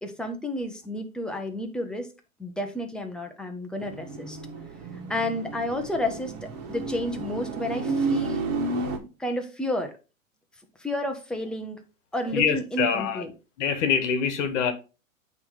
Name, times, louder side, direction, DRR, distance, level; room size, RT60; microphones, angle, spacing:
voice 1, 0.0-2.1 2.4-4.4 5.1-6.3 6.7-8.5 9.2-9.9 10.8-11.8 12.1-13.3, left 1 dB, ahead, 0.5 m, -31 dB
sound 1, 3.8-9.0, right 3 dB, 45° right, 1.6 m, -31 dB
voice 2, 12.3-13.2 13.6-14.7, left 7 dB, 55° left, 1.3 m, -25 dB
8.7 x 3.2 x 3.7 m
hypercardioid pair, 130°, 42 cm